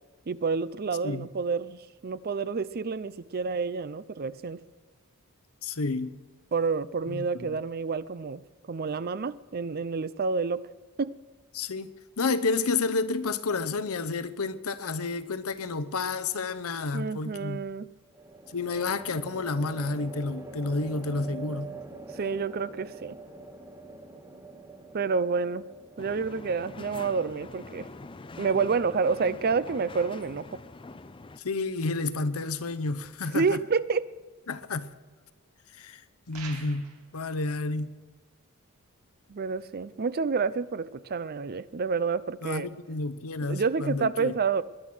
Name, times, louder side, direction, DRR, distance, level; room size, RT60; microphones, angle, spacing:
voice 1, 0.3-4.6 6.5-10.6 11.0-11.1 16.9-17.9 22.1-23.2 24.9-25.6 26.0-27.9 28.4-30.6 33.3-34.1 39.3-42.7 43.4-44.6, right 5 dB, 45° right, 0.5 m, -29 dB
voice 2, 5.6-6.1 7.1-7.2 11.5-11.9 12.2-17.6 18.5-21.7 31.4-33.6 34.5-34.9 35.8-36.0 36.3-37.9 42.4-44.3, left 3 dB, 75° left, 0.8 m, -30 dB
sound 1, 15.2-15.6 18.1-29.5, right 3 dB, 15° right, 1.0 m, -45 dB
sound 2, 26.0-31.4, left 3 dB, 25° left, 0.5 m, -44 dB
sound 3, 36.3-37.1, right 5 dB, 80° right, 2.5 m, -44 dB
20.0 x 10.5 x 6.2 m
head